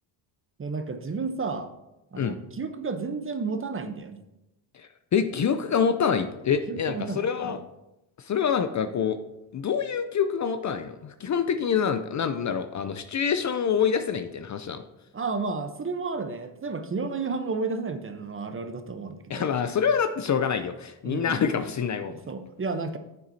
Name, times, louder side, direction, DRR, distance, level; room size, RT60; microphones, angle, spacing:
voice 1, 0.6-1.7 2.1-4.2 6.7-7.6 15.1-19.5 21.0-21.4 22.3-23.0, right 4 dB, 25° right, 9 dB, 0.9 m, -32 dB
voice 2, 4.7-7.6 8.2-9.2 9.5-14.8 19.3-22.1, left 7 dB, 35° left, 10 dB, 0.6 m, -26 dB
9.2 x 7.6 x 2.8 m, 0.94 s
supercardioid pair, 70°, 49 cm